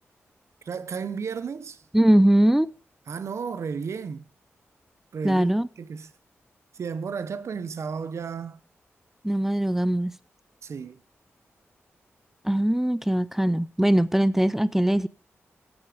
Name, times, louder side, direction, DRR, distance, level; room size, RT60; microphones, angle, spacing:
voice 1, 0.7-1.8 3.1-4.2 5.1-5.5 5.8-6.1 6.7-8.6 10.6-11.0, right 6 dB, 70° right, 0.8 m, -33 dB
voice 2, 1.9-2.7 5.2-5.7 9.2-10.1 12.4-15.1, right 1 dB, 5° right, 0.4 m, -21 dB
10.5 x 8.6 x 5.0 m
cardioid pair, 60°, 5 cm